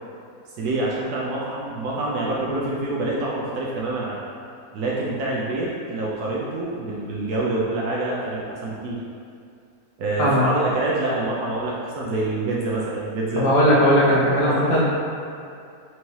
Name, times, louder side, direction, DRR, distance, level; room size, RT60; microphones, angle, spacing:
voice 1, 0.6-4.2 4.7-9.0 10.0-13.7 14.5-14.7, right 2 dB, 75° right, -5 dB, 1.1 m, -26 dB
voice 2, 13.3-14.8, equal, 70° left, -7 dB, 1.2 m, -18 dB
4.5 x 2.7 x 3.1 m, 2.4 s
omnidirectional pair, 1.7 m